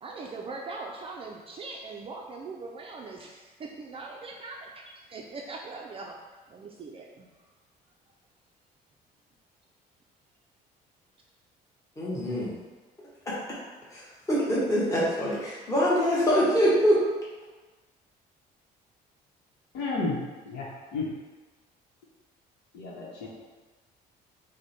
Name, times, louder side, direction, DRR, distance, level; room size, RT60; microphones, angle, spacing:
voice 1, 0.0-6.2 6.5-7.3, right 3 dB, 35° right, 0 dB, 0.4 m, -41 dB
voice 2, 12.0-12.6 13.2-13.4 13.9-17.0, equal, 20° left, -8 dB, 1.2 m, -24 dB
voice 3, 19.7-20.2 20.4-21.1 22.7-23.3, left 3 dB, 85° left, -5 dB, 0.9 m, -32 dB
4.8 x 2.1 x 4.2 m, 1.3 s
cardioid pair, 110°, 17 cm